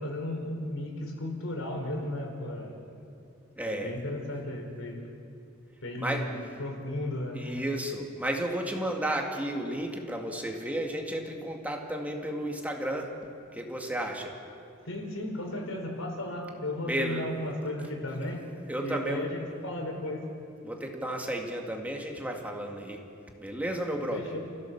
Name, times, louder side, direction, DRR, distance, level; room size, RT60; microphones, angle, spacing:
voice 1, 0.0-2.7 3.6-5.1 5.8-7.5 14.8-18.4 18.8-20.2 24.1-24.4, left 1 dB, 80° left, 1 dB, 5.0 m, -35 dB
voice 2, 3.6-4.0 6.0-6.3 7.3-13.1 13.5-14.3 16.8-17.3 18.7-19.3 20.6-23.0 23.4-24.3, right 1 dB, 10° right, 1 dB, 2.0 m, -33 dB
30.0 x 15.5 x 7.2 m, 2.6 s
head